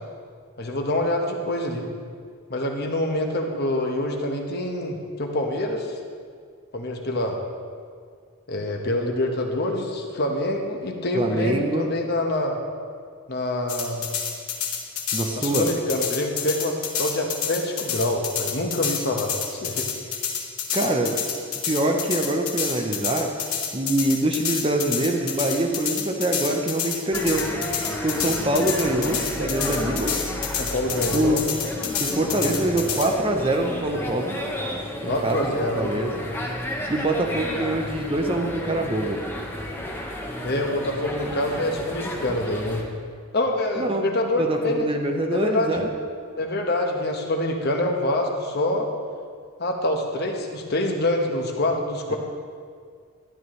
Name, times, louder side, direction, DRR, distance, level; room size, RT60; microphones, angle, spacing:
voice 1, 0.6-1.9 2.5-6.0 6.7-7.4 8.5-12.6 13.3-14.1 15.4-19.9 30.6-31.4 35.0-35.9 40.4-42.8 43.3-44.8 45.3-45.7 46.4-48.9 49.6-52.2, left 1 dB, 45° left, 2 dB, 1.0 m, -26 dB
voice 2, 11.1-11.9 15.1-15.7 20.7-21.3 21.6-23.3 23.7-27.6 28.0-30.2 31.1-31.4 32.0-34.4 35.0-36.3 36.9-39.2 43.8-44.1 44.4-45.9 52.1-52.2, right 1 dB, 25° right, 3 dB, 0.7 m, -24 dB
sound 1, 13.7-33.1, left 8 dB, 75° left, 1.1 m, -29 dB
sound 2, 27.1-42.8, left 1 dB, 10° left, 0.8 m, -32 dB
12.5 x 10.5 x 3.1 m, 2.1 s
head